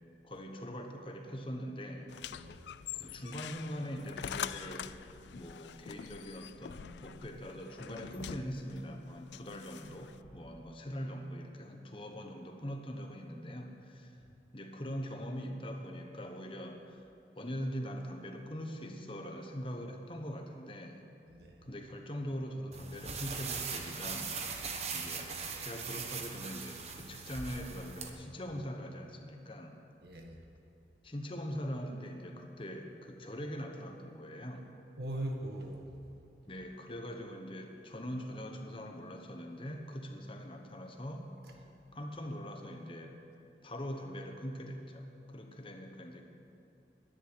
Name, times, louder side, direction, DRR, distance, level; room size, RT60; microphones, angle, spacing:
voice 1, 0.2-2.1 2.9-5.0 5.3-14.2 14.5-17.1 17.4-21.1 21.6-24.4 24.9-29.8 31.0-34.7 36.5-43.2 43.6-46.2, equal, 30° left, 4 dB, 1.2 m, -42 dB
sound 1, 2.1-10.2, left 8 dB, 80° left, 0.4 m, -45 dB
voice 2, 2.3-2.7 21.3-21.6 24.7-24.9 30.0-30.4 35.0-36.0, right 1 dB, 65° right, 2 dB, 1.5 m, -41 dB
sound 2, 22.7-28.1, right 5 dB, 35° right, 1.1 m, -40 dB
10.5 x 10.5 x 9.9 m, 2.6 s
head